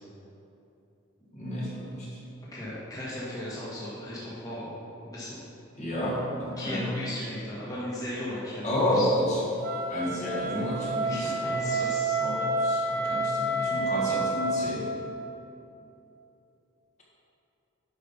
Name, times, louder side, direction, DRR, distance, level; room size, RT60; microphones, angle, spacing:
voice 1, 1.3-2.2 5.7-6.9 8.6-9.4 9.9-11.6 12.2-14.9, equal, 35° left, -5 dB, 1.6 m, -30 dB
voice 2, 2.5-4.7 5.0-5.4 6.6-9.1 11.0-12.1, left 1 dB, 15° left, -8 dB, 1.5 m, -36 dB
Wind instrument woodwind instrument, 9.6-14.6, right 2 dB, 45° right, 1.6 m, -29 dB
9.3 x 5.3 x 5.7 m, 2.9 s
head